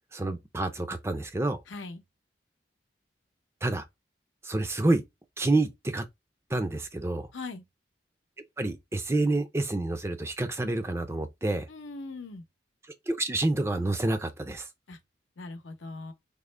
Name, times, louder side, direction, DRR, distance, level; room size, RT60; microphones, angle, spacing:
voice 1, 0.1-1.6 3.6-3.8 4.4-5.0 5.4-6.0 6.5-7.3 8.6-11.6 13.1-14.7, right 2 dB, 15° right, 0.4 m, -28 dB
voice 2, 1.7-2.0 7.3-7.6 11.7-12.4 14.9-15.0 15.4-16.1, left 3 dB, 90° left, 0.7 m, -40 dB
3.6 x 2.1 x 3.2 m
head